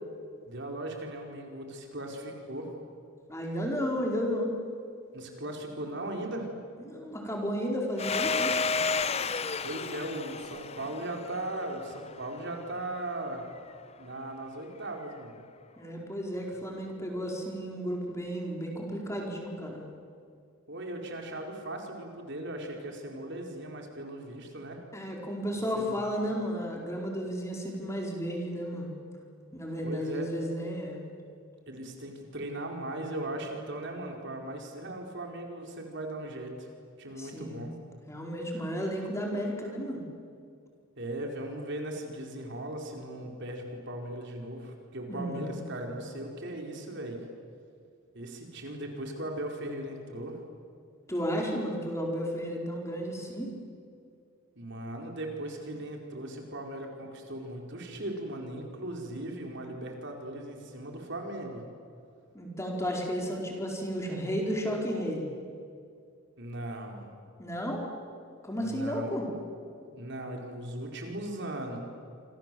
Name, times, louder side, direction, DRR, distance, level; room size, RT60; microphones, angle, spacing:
voice 1, 0.5-2.7 5.1-6.5 9.6-13.4 14.0-15.3 20.7-24.8 25.7-25.9 29.8-30.3 31.7-36.7 37.0-37.7 41.0-47.2 48.1-50.4 54.6-61.6 66.4-67.1 68.6-69.1 69.9-71.8, right 1 dB, 55° right, 2 dB, 4.7 m, -38 dB
voice 2, 3.3-4.6 6.8-8.6 15.8-19.9 24.9-28.9 29.5-31.0 37.2-37.7 38.1-40.0 45.1-45.7 51.1-53.5 62.3-65.3 67.4-67.8 68.4-69.3, equal, 15° left, 0 dB, 4.6 m, -33 dB
Domestic sounds home sounds, 8.0-12.4, left 4 dB, 30° left, 0.8 m, -32 dB
29.0 x 26.5 x 7.8 m, 2.4 s
head